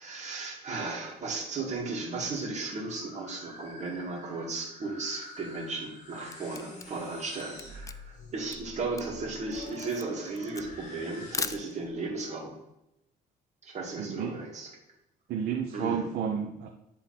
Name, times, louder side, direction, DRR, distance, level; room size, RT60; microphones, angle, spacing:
voice 1, 0.0-12.6 13.6-14.7 15.7-16.1, right 3 dB, 45° right, -1 dB, 2.3 m, -35 dB
sound 1, 2.0-11.9, left 1 dB, 45° left, 2.1 m, -47 dB
Camera, 5.9-12.1, left 5 dB, 20° left, 0.4 m, -40 dB
voice 2, 14.0-14.3 15.3-16.7, right 7 dB, 70° right, 2 dB, 0.9 m, -31 dB
9.8 x 3.9 x 4.3 m, 0.87 s
cardioid pair, 110°, 17 cm